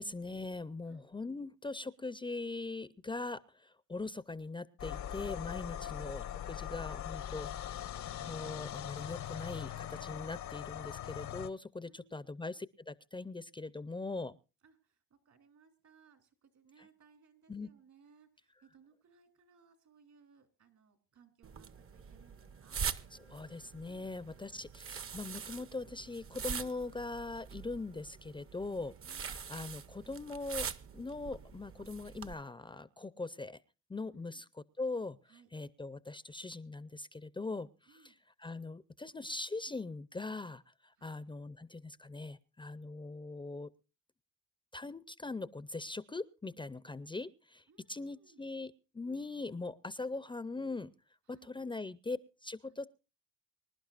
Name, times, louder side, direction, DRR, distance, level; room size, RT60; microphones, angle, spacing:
voice 1, 0.0-14.4 17.5-17.7 23.3-28.9 29.2-33.6 33.9-34.4 34.8-35.2 35.5-38.0 38.4-40.6 41.0-43.7 44.7-47.6 47.9-50.9 51.3-52.9, left 3 dB, 15° left, 16 dB, 0.6 m, -41 dB
sound 1, 4.8-11.5, left 10 dB, 70° left, 1.0 m, -41 dB
voice 2, 5.7-6.0 11.8-12.1 14.6-22.8 23.9-24.1 29.0-29.3 34.1-34.4 35.3-35.5 37.9-38.2 41.0-41.2 47.7-48.5 51.3-51.5 52.7-52.8, right 6 dB, 65° right, 7 dB, 3.3 m, -65 dB
sound 2, 21.4-32.3, right 6 dB, 45° right, 0.9 m, -44 dB
25.5 x 11.5 x 2.5 m, 0.30 s
cardioid pair, 90°, 30 cm